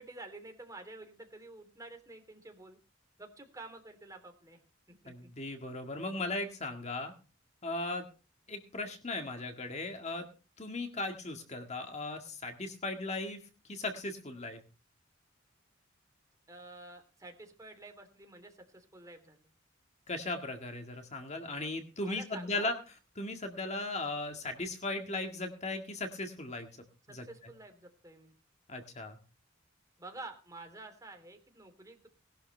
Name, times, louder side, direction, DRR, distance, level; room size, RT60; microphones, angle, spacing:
voice 1, 0.0-2.8 3.2-4.6 4.9-5.3 16.5-19.4 22.0-22.7 27.2-28.3 30.0-32.1, right 2 dB, 15° right, 4 dB, 3.3 m, -49 dB
voice 2, 5.1-7.1 7.6-8.1 8.5-10.3 10.6-13.4 13.7-14.6 20.1-22.7 23.2-26.7 27.1-27.2 28.7-29.2, left 2 dB, 35° left, 5 dB, 1.8 m, -37 dB
19.5 x 12.0 x 3.3 m, 0.34 s
head